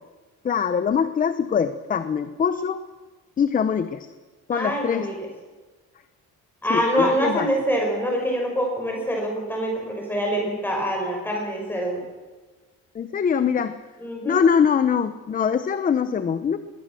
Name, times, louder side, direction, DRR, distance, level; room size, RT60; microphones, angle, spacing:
voice 1, 0.4-2.8 3.4-4.1 4.5-5.1 6.7-7.5 12.9-13.8 14.3-16.6, left 7 dB, 25° left, 12 dB, 0.7 m, -23 dB
voice 2, 4.5-5.3 6.6-12.0 14.0-14.4, equal, 5° left, 0 dB, 6.0 m, -25 dB
21.0 x 18.0 x 7.6 m, 1.3 s
cardioid pair, 175°, 31 cm